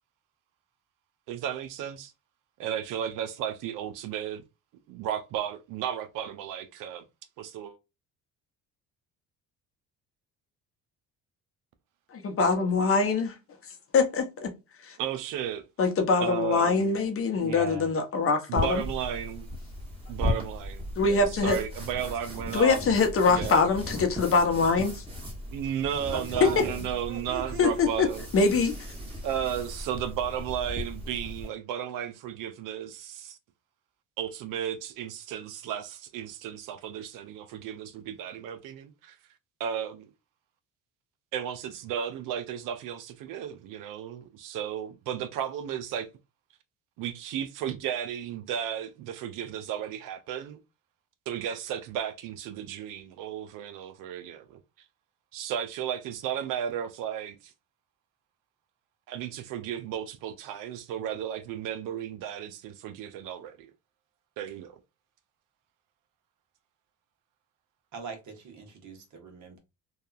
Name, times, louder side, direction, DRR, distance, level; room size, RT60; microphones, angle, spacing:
voice 1, 1.3-2.1 2.6-4.4 4.9-7.0 7.4-7.8 12.4-12.5 15.0-15.7 16.2-17.0 18.5-19.5 20.1-22.8 23.3-23.6 25.5-28.3 29.2-33.4 34.2-39.2 39.6-40.1 41.3-46.1 47.0-50.6 51.3-54.6 55.3-57.5 59.1-63.7 64.4-64.8, right 9 dB, 75° right, 0.5 m, -34 dB
voice 2, 12.1-13.3 13.9-14.5 14.9-15.0 15.8-18.8 21.0-21.6 22.5-25.0 26.4-26.6 27.6-28.1 28.3-28.7, left 4 dB, 40° left, 0.8 m, -23 dB
voice 3, 17.4-17.9 26.1-27.8 67.9-69.6, right 3 dB, 60° right, 1.1 m, -38 dB
sound 1, 18.6-31.5, left 1 dB, 15° right, 1.3 m, -37 dB
2.8 x 2.3 x 2.4 m
cardioid pair, 85°, 33 cm